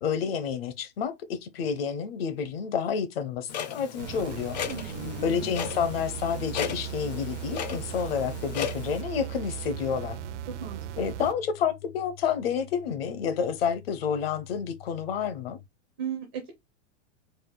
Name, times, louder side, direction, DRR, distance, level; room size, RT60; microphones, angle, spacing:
voice 1, 0.0-4.6 5.2-10.2 11.0-15.6, left 7 dB, 50° left, 0.9 m, -29 dB
Clock, 3.5-9.0, left 7 dB, 35° left, 0.5 m, -36 dB
sound 1, 4.0-11.3, right 13 dB, 70° right, 0.6 m, -38 dB
voice 2, 4.6-5.5 10.6-11.1 16.0-16.5, right 8 dB, 15° right, 0.4 m, -37 dB
sound 2, 5.7-15.7, left 13 dB, 75° left, 2.1 m, -49 dB
4.3 x 2.4 x 3.8 m
supercardioid pair, 175°, 37 cm